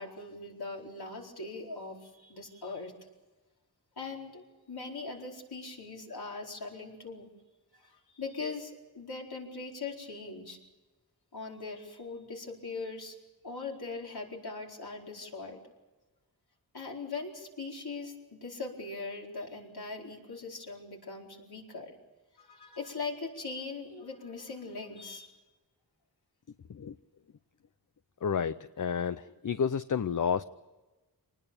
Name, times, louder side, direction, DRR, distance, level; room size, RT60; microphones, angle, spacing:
voice 1, 0.0-2.9 4.0-7.3 7.7-10.6 11.3-13.2 13.4-15.6 16.7-21.9 22.3-25.3, left 3 dB, 70° left, -1 dB, 4.5 m, -41 dB
voice 2, 28.2-30.4, left 7 dB, 50° left, 12 dB, 0.7 m, -30 dB
26.0 x 20.0 x 7.1 m, 1.2 s
wide cardioid pair, 65°, 40 cm